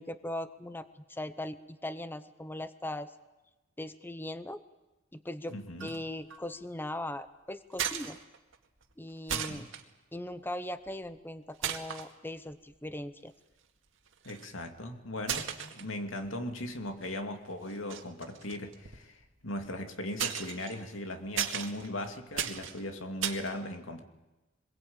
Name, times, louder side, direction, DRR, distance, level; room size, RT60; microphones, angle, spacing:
voice 1, 0.0-3.1 3.8-4.6 5.1-5.6 5.8-8.2 9.0-9.7 10.1-13.3, left 1 dB, 10° left, 12 dB, 0.8 m, -39 dB
voice 2, 5.5-5.9 9.3-9.7 14.2-24.0, left 1 dB, 85° left, 5 dB, 2.6 m, -38 dB
sound 1, 5.8-6.0 6.3-6.6 7.7-8.6 8.8-8.9 9.3-9.8 10.9-11.2 11.6-12.1 12.7-12.8 14.1-14.6 15.2-16.4 16.8-17.2 17.7-19.7 20.2-23.5, right 9 dB, 75° right, 2.1 m, -36 dB
26.0 x 22.0 x 8.8 m, 1.1 s
head